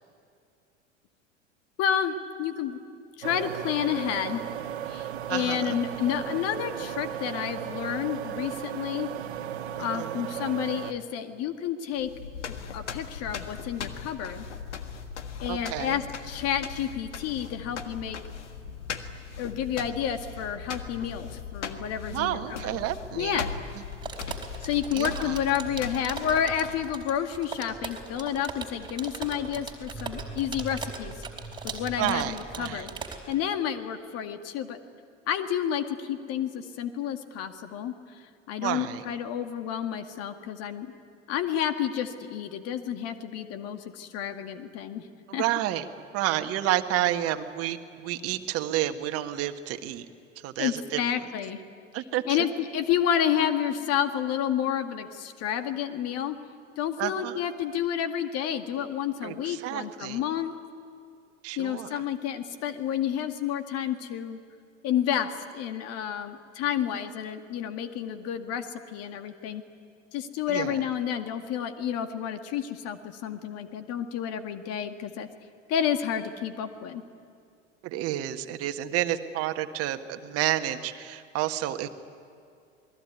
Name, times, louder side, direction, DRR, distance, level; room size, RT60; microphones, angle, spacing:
voice 1, 1.8-2.8 3.2-4.4 4.9-9.1 9.7-12.1 12.5-14.5 15.4-18.2 19.4-22.8 23.2-23.5 24.6-31.1 31.6-32.9 33.3-34.8 35.3-40.9 41.3-45.1 45.3-45.4 50.6-51.6 52.3-56.4 56.8-60.5 61.6-64.4 64.8-69.6 70.1-75.3 75.7-77.0, left 9 dB, 40° left, 8 dB, 2.1 m, -30 dB
sound 1, 3.2-10.9, right 10 dB, 60° right, 1.5 m, -35 dB
voice 2, 5.3-5.8 9.9-10.2 15.5-16.0 22.1-23.4 24.9-25.4 32.0-32.9 38.6-39.0 45.3-45.9 46.1-50.0 50.4-51.0 51.9-52.4 57.0-57.4 59.2-60.2 61.4-62.0 70.5-70.8 77.8-81.9, right 13 dB, 40° right, 8 dB, 1.6 m, -30 dB
sound 2, 11.9-27.1, left 6 dB, 70° left, 1.7 m, -39 dB
sound 3, 23.9-33.3, right 4 dB, 10° right, 4.0 m, -39 dB
28.0 x 20.5 x 9.6 m, 2.4 s
figure-of-eight pair, 80°, 37 cm